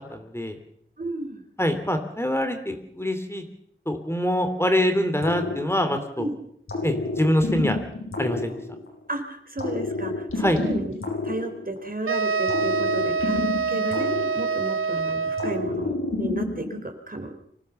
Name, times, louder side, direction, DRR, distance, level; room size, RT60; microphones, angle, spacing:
voice 1, 0.1-0.6 1.6-3.4 3.9-6.3 6.8-7.8 8.2-8.5 10.4-10.6, left 1 dB, 10° left, 6 dB, 3.0 m, -24 dB
voice 2, 1.0-1.4 6.2-6.3 9.1-10.9 11.2-13.4 13.7-17.3, right 1 dB, 45° right, 5 dB, 3.8 m, -32 dB
sound 1, 5.2-6.2 6.7-9.1 9.6-12.0 12.5-14.9 15.4-16.9, left 2 dB, 85° left, 7.9 m, -30 dB
sound 2, 12.1-15.7, right 5 dB, 90° right, 1.1 m, -26 dB
25.5 x 16.5 x 7.0 m, 0.69 s
wide cardioid pair, 80°, 20 cm